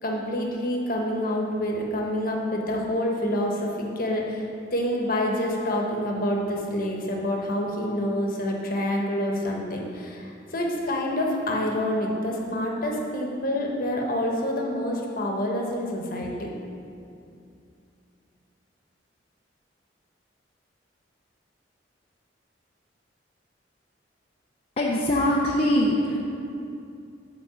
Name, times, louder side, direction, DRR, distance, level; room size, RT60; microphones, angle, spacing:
voice 1, 0.0-4.4 4.7-16.5, left 1 dB, 50° left, 0 dB, 1.1 m, -27 dB
voice 2, 24.8-26.2, left 1 dB, 35° left, -5 dB, 0.7 m, -22 dB
8.4 x 3.8 x 6.9 m, 2.5 s
head